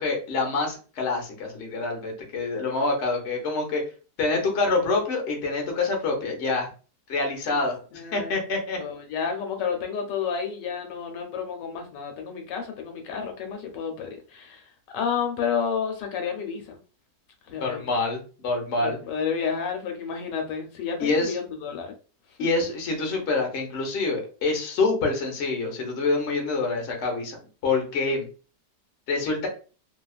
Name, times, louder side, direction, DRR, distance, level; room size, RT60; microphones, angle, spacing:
voice 1, 0.0-3.8 4.2-6.7 7.1-8.8 17.6-19.0 21.0-21.3 22.4-27.4 27.6-28.3 29.1-29.5, left 3 dB, 50° left, 1 dB, 0.9 m, -26 dB
voice 2, 7.9-8.3 8.8-16.8 17.5-17.8 18.8-21.9, left 6 dB, 85° left, 4 dB, 1.3 m, -31 dB
2.8 x 2.3 x 2.3 m, 0.36 s
omnidirectional pair, 1.9 m